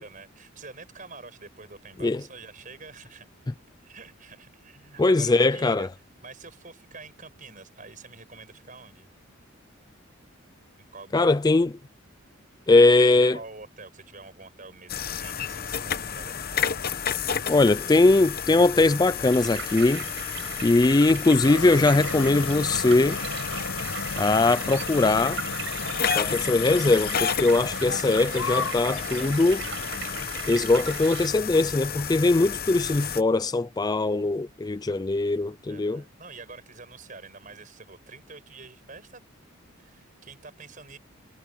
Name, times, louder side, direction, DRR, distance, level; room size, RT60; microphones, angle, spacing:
voice 1, 0.0-3.3 3.8-5.9 6.2-9.1 10.8-11.5 13.0-16.7 28.9-30.0 35.7-39.2 39.8-41.0, right 4 dB, 40° right, 5.7 m, -47 dB
voice 2, 5.0-5.9 11.1-11.7 12.7-13.4 17.5-20.0 20.6-23.2 24.2-25.4 26.1-29.6 30.5-36.0, left 2 dB, 20° left, 0.3 m, -21 dB
sound 1, 14.9-33.2, left 7 dB, 45° left, 1.0 m, -32 dB
sound 2, 19.2-31.3, right 8 dB, 55° right, 5.6 m, -38 dB
sound 3, 21.4-30.3, left 3 dB, 90° left, 5.2 m, -35 dB
head